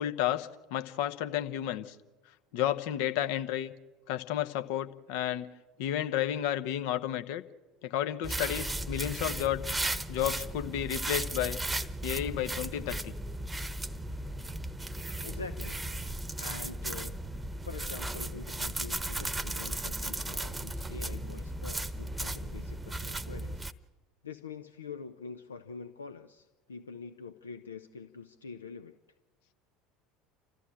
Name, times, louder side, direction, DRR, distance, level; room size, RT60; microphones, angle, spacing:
voice 1, 0.0-1.9 2.5-3.7 4.1-5.5 5.8-7.4 7.8-9.6 10.1-11.6 12.0-13.1, left 11 dB, 60° left, 11 dB, 1.0 m, -32 dB
sound 1, 8.2-23.7, right 1 dB, 10° right, 1.0 m, -36 dB
voice 2, 15.2-15.8 16.4-17.2 17.4-23.7 24.2-29.0, left 5 dB, 80° left, 9 dB, 0.7 m, -45 dB
29.5 x 14.0 x 8.7 m, 1.2 s
figure-of-eight pair, 70°, 0 cm